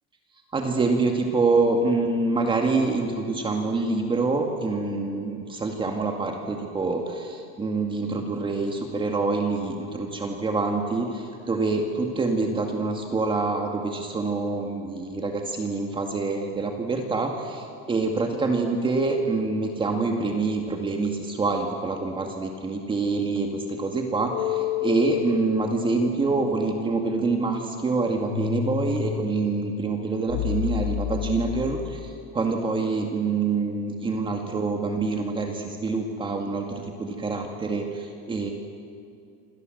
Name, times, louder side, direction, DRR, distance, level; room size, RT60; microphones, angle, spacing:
voice 1, 0.5-36.7 37.0-38.5, right 3 dB, 15° right, 2 dB, 2.1 m, -26 dB
sound 1, 24.3-32.2, left 12 dB, 85° left, 2.8 m, -31 dB
28.0 x 27.0 x 7.9 m, 2.4 s
cardioid pair, 170°, 30 cm